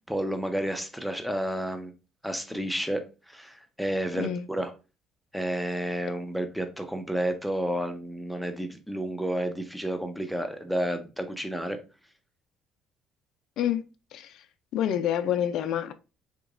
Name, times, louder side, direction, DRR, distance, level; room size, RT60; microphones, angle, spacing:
voice 1, 0.1-1.9 2.2-3.0 3.3-4.7 5.3-11.8, right 1 dB, ahead, 0.6 m, -31 dB
voice 2, 14.1-14.5 14.7-15.9, left 10 dB, 70° left, 0.4 m, -27 dB
3.6 x 2.9 x 2.5 m
supercardioid pair, 85°, 0 cm